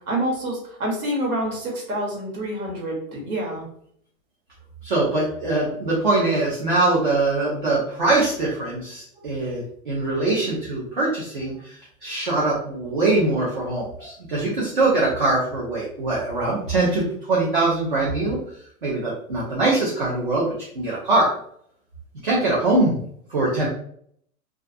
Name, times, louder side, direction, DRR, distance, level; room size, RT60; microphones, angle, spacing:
voice 1, 0.1-3.6, right 1 dB, 80° right, -2 dB, 1.2 m, -27 dB
voice 2, 4.8-11.8 12.0-18.4 18.8-20.5 20.7-21.3 22.2-23.0 23.3-23.7, right 2 dB, 40° right, -5 dB, 0.4 m, -22 dB
2.3 x 2.3 x 2.5 m, 0.65 s
hypercardioid pair, 180°, 43 cm